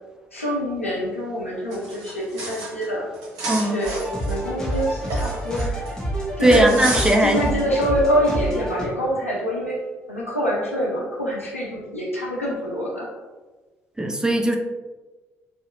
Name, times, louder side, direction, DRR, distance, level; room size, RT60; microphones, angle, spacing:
voice 1, 0.3-3.1 3.4-4.0 4.2-5.9 6.4-9.8 10.1-13.1, equal, 90° left, -5 dB, 0.5 m, -25 dB
sound 1, 1.7-2.9 3.1-5.9 6.5-7.5, right 2 dB, 60° right, 0.7 m, -31 dB
voice 2, 3.5-3.8 6.4-7.4 14.0-14.6, right 1 dB, 10° right, 3 dB, 0.4 m, -18 dB
sound 2, 3.9-8.9, right 1 dB, 10° left, 0.8 m, -28 dB
2.7 x 2.0 x 2.6 m, 1.2 s
figure-of-eight pair, 45°, 7 cm